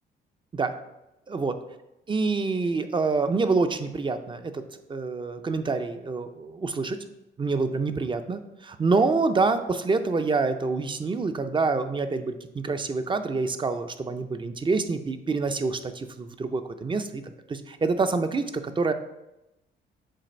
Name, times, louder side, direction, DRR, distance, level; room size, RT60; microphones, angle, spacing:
voice 1, 2.1-4.6 4.9-7.0 7.4-18.9, right 4 dB, 25° right, 9 dB, 0.5 m, -26 dB
7.4 x 2.5 x 5.1 m, 0.92 s
cardioid pair, 90°, 20 cm